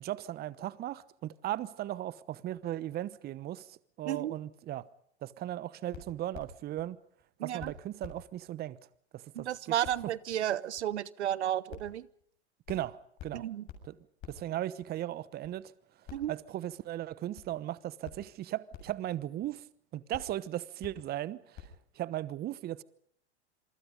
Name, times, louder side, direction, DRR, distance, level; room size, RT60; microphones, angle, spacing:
voice 1, 0.0-4.9 5.2-7.0 7.4-8.8 9.1-9.7 12.7-13.0 13.2-13.5 13.8-14.0 14.3-15.7 16.3-19.6 19.9-22.8, right 13 dB, 30° right, 1.0 m, -37 dB
sound 1, 5.9-6.8 7.2-7.3 7.6-7.7 8.0-8.2 8.5-8.6 8.9-9.0 9.4-9.5 9.8-9.9 10.3-10.4 10.8-10.9 11.2-11.3 11.7-11.9 12.2-12.3 12.6-12.9 13.2-13.3 13.7-13.8 14.2-14.4 14.8-14.9 15.4-15.5 16.0-16.4 16.7-16.8 17.3-17.4 18.0-18.1 18.7-18.9 19.4-19.5 20.1-20.3 20.8-20.9 21.5-21.6, left 11 dB, 40° left, 7.3 m, -46 dB
voice 2, 7.4-7.7 9.4-12.1 13.3-13.6 16.1-16.3, right 11 dB, 75° right, 1.1 m, -32 dB
27.0 x 24.0 x 5.3 m
hypercardioid pair, 110°, 34 cm